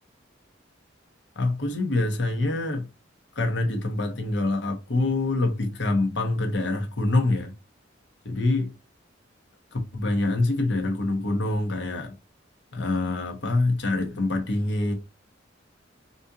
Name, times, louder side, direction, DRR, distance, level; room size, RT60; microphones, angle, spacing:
voice 1, 1.4-2.9 3.4-7.5 8.2-8.7 9.7-12.1 12.7-14.9, left 2 dB, 65° left, 1.0 m, -25 dB
4.1 x 2.7 x 2.3 m
head